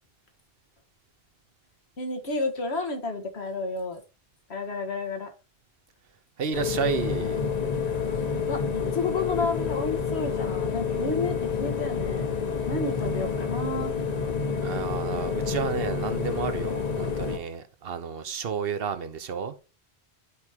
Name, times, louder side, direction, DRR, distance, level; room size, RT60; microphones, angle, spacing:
voice 1, 2.0-4.0 4.5-5.3 8.5-12.3 12.7-13.9, left 3 dB, 85° left, 1.7 m, -31 dB
voice 2, 6.4-7.4 14.6-19.6, right 6 dB, 65° right, 1.1 m, -31 dB
sound 1, 6.5-17.4, left 5 dB, 40° left, 0.9 m, -29 dB
11.5 x 4.8 x 2.9 m
omnidirectional pair, 1.1 m